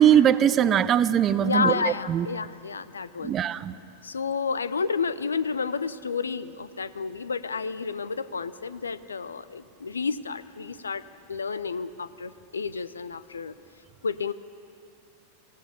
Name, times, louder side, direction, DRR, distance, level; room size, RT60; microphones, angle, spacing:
voice 1, 0.0-1.7 2.1-2.3 3.2-3.7, right 9 dB, 30° right, 16 dB, 0.6 m, -20 dB
voice 2, 1.4-3.4 4.0-11.0 11.3-13.5 14.0-14.3, left 5 dB, 75° left, 16 dB, 0.6 m, -30 dB
24.5 x 16.5 x 6.8 m, 2.6 s
figure-of-eight pair, 90°, 0 cm